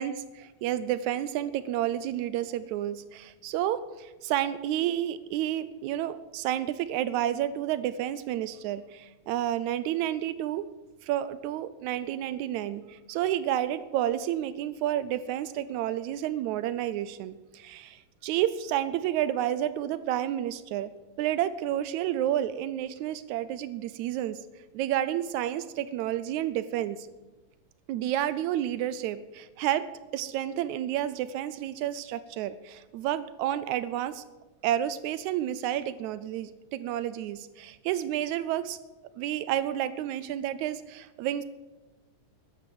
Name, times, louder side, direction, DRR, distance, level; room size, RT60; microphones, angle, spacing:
voice 1, 0.0-10.7 11.0-20.9 21.2-24.4 24.7-27.1 27.9-29.9 30.1-34.2 34.6-38.8 39.2-41.4, right 12 dB, 85° right, 14 dB, 2.0 m, -30 dB
13.0 x 10.5 x 7.7 m, 1.2 s
omnidirectional pair, 3.3 m